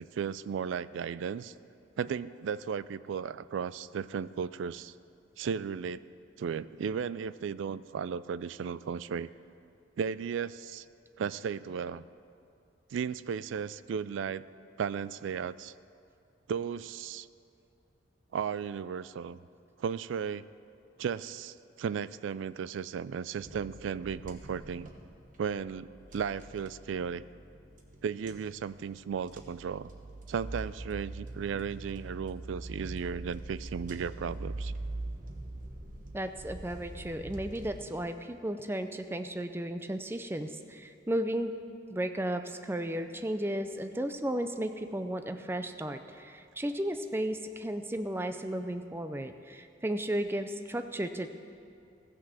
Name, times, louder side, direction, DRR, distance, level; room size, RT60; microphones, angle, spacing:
voice 1, 0.0-1.5 2.0-4.9 5.4-6.0 6.4-9.3 10.0-10.8 11.2-12.0 12.9-14.4 14.8-15.7 16.5-17.3 18.3-19.4 19.8-20.5 21.0-24.9 25.4-25.9 26.1-27.2 28.0-29.9 30.3-34.7, right 7 dB, 85° right, 17 dB, 0.3 m, -35 dB
sound 1, 23.3-37.8, right 2 dB, 45° right, 1.1 m, -43 dB
voice 2, 36.1-41.5 41.9-51.3, right 1 dB, 10° right, 8 dB, 0.5 m, -34 dB
15.5 x 6.1 x 7.5 m, 2.5 s
head